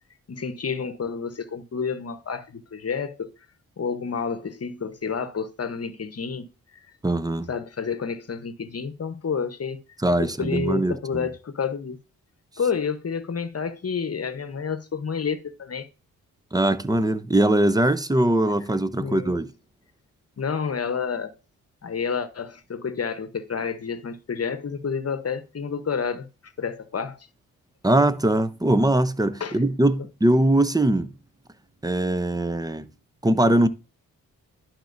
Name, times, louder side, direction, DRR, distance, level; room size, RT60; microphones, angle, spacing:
voice 1, 0.3-3.3 3.8-6.5 7.5-9.8 10.2-12.0 12.6-15.9 19.0-19.3 20.4-21.3 21.8-26.3 26.6-27.2 29.4-29.6, left 6 dB, 40° left, 1.0 m, -29 dB
voice 2, 7.0-7.5 10.0-11.3 16.5-19.5 27.8-31.1 31.8-32.9 33.2-33.7, right 1 dB, 10° right, 0.7 m, -21 dB
11.5 x 4.4 x 2.6 m
supercardioid pair, 50°, 36 cm